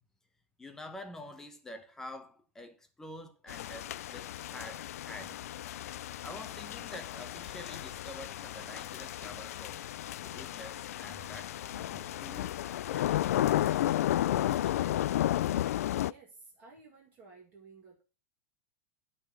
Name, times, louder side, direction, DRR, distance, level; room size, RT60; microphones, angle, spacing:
voice 1, 0.6-5.4 6.2-9.8 10.2-12.5 12.9-13.9, left 1 dB, 5° left, 0.9 m, -48 dB
sound 1, 3.5-16.1, left 13 dB, 85° left, 0.4 m, -33 dB
voice 2, 16.0-18.0, right 4 dB, 20° right, 2.0 m, -55 dB
11.5 x 4.0 x 7.1 m
supercardioid pair, 175°, 8 cm